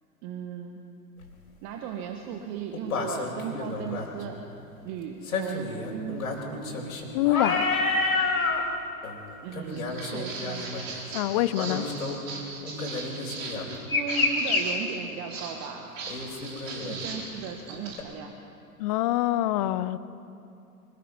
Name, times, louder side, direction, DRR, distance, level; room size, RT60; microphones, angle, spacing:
voice 1, 0.2-0.8 1.6-4.4 4.8-6.3 9.4-10.7 11.0-11.1 13.9-15.9 16.8-18.3, right 7 dB, 35° right, 4 dB, 1.6 m, -36 dB
sound 1, 1.2-1.3 2.7-4.1 5.2-8.6 9.0-9.2 9.5-11.0 11.5-12.2 12.6-14.6 16.1-17.2 18.0-18.1, left 3 dB, 65° left, 4.0 m, -29 dB
voice 2, 7.1-7.7 11.1-11.8 18.8-20.0, left 14 dB, 25° left, 15 dB, 0.4 m, -25 dB
Walk footsteps, 9.7-18.0, right 4 dB, 55° right, 4.5 m, -39 dB
24.5 x 19.0 x 5.4 m, 2.7 s
figure-of-eight pair, 100°, 47 cm